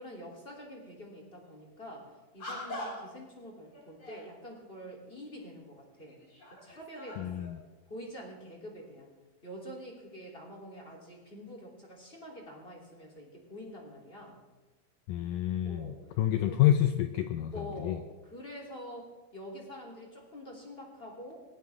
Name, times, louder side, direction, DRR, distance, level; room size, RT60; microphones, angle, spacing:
voice 1, 0.0-6.2 6.5-7.4 7.9-9.1 9.4-14.4 15.6-16.0 16.5-16.6 17.5-21.4, equal, 15° left, -1 dB, 2.9 m, -46 dB
sound 1, 1.4-1.6 2.4-3.2 3.7-4.3 5.3-5.4 6.0-7.6, left 1 dB, 40° left, 5.8 m, -43 dB
voice 2, 7.2-7.6 15.1-17.5 17.8-18.0, left 12 dB, 85° left, 8 dB, 1.8 m, -28 dB
20.5 x 17.5 x 3.6 m, 1.2 s
omnidirectional pair, 4.6 m